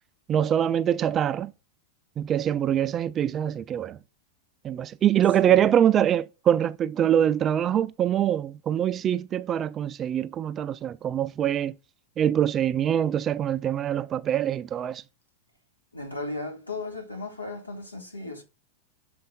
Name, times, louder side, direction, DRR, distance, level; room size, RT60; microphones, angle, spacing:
voice 1, 0.3-1.5 2.2-4.0 4.6-11.7 12.2-15.0, right 10 dB, 25° right, 0.3 m, -24 dB
voice 2, 15.9-18.4, left 2 dB, 85° left, 1.4 m, -36 dB
6.7 x 3.9 x 3.8 m
figure-of-eight pair, 90°, 0 cm